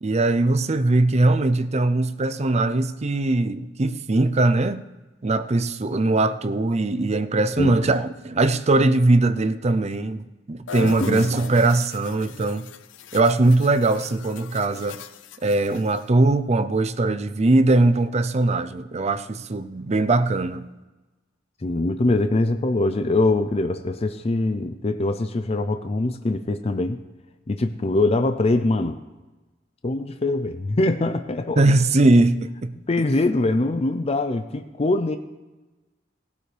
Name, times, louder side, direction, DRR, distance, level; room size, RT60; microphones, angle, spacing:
voice 1, 0.0-4.8 5.2-12.7 13.1-15.0 15.4-20.7 31.6-32.7, right 2 dB, 35° right, 0.5 m, -20 dB
sound 1, 10.7-16.1, left 5 dB, 90° left, 0.7 m, -39 dB
voice 2, 11.0-11.5 21.6-27.0 27.5-29.0 29.8-31.8 32.9-35.2, left 2 dB, 35° left, 0.5 m, -23 dB
18.5 x 12.0 x 3.4 m
head